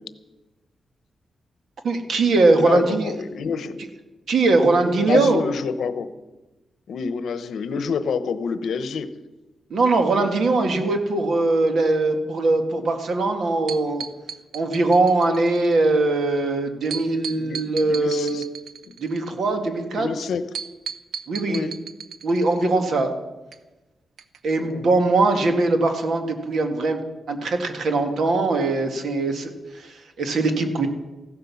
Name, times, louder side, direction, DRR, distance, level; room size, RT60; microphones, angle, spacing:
voice 1, 1.8-3.1 4.3-5.4 9.7-14.0 14.5-18.4 19.0-20.1 21.3-21.7 22.2-23.1 24.4-27.0 27.3-30.9, right 3 dB, 60° right, 5 dB, 1.9 m, -21 dB
voice 2, 2.6-3.8 5.0-6.1 6.9-9.1 17.3-17.6 17.9-18.4 20.0-20.4 21.5-21.8 24.6-24.9, left 6 dB, 75° left, 12 dB, 0.9 m, -27 dB
sound 1, 13.7-15.7 16.9-19.3 20.5-22.7 23.5-23.6 24.2-24.4 24.7-24.8, right 7 dB, 85° right, 0.9 m, -35 dB
15.5 x 12.0 x 7.1 m, 1.1 s
wide cardioid pair, 170°, 0 cm